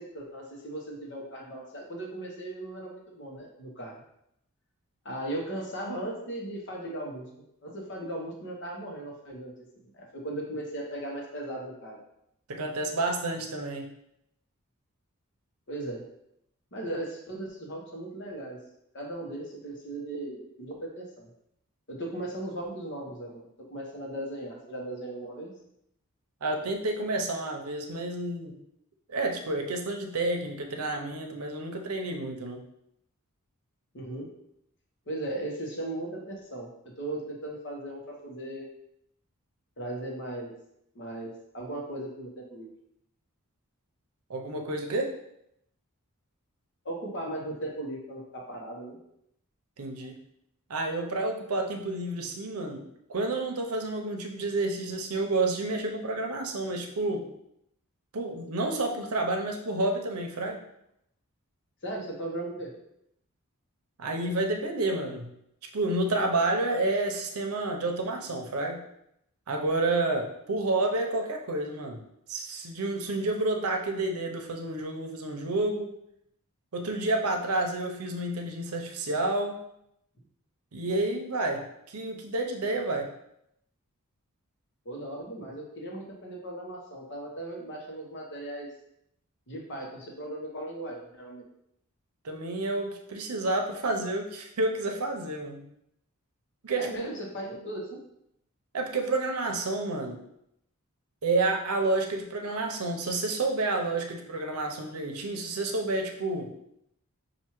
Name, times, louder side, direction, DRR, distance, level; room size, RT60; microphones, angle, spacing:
voice 1, 0.0-3.9 5.0-7.3 7.6-9.5 9.9-12.0 15.7-16.0 16.7-18.6 18.9-21.3 21.9-23.4 23.7-25.5 33.9-34.3 35.1-36.7 37.0-38.6 39.8-40.5 40.9-42.7 46.8-48.2 48.5-49.0 61.8-62.7 84.8-88.7 89.5-91.4 96.8-98.0, right 1 dB, 55° left, -1 dB, 1.1 m, -37 dB
voice 2, 12.5-13.9 26.4-28.5 29.1-32.6 44.3-45.1 49.8-50.2 50.7-52.8 53.1-57.3 58.1-60.6 64.0-65.3 65.7-68.8 69.5-72.0 72.3-75.9 76.7-79.6 80.7-83.1 92.2-95.6 96.6-96.9 98.7-100.2 101.2-106.5, right 2 dB, 90° right, 3 dB, 0.7 m, -29 dB
5.7 x 2.6 x 3.0 m, 0.77 s
head